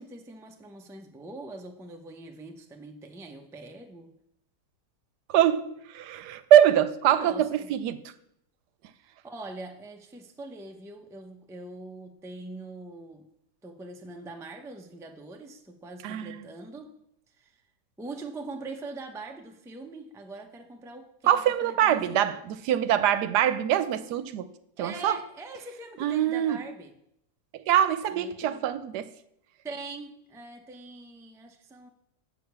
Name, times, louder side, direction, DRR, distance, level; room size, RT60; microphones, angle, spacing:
voice 1, 0.0-4.1 7.0-7.7 9.0-13.2 13.6-17.0 17.4-17.5 18.0-22.4 24.8-26.9 28.1-28.7 29.6-31.9, right 2 dB, 5° right, 0.4 m, -43 dB
voice 2, 5.3-8.0 16.0-16.4 21.2-24.5 24.8-25.2 26.0-26.6 27.5-29.1, right 10 dB, 85° right, 1.2 m, -24 dB
7.6 x 6.7 x 6.9 m
omnidirectional pair, 1.7 m